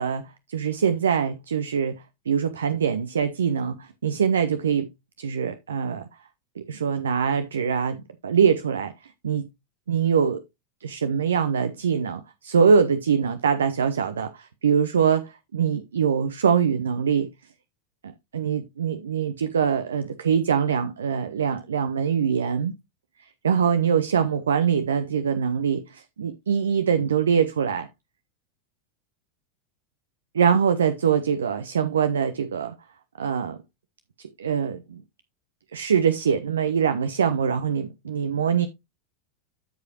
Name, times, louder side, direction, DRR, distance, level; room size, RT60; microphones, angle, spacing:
voice 1, 0.0-4.9 5.2-6.1 6.6-8.0 8.2-9.4 9.9-10.4 10.8-17.3 18.3-22.7 23.4-27.9 30.3-32.7 33.2-33.6 34.2-35.0 35.7-38.7, right 7 dB, 75° right, 0.7 m, -23 dB
13.0 x 4.9 x 2.9 m
figure-of-eight pair, 85°, 0 cm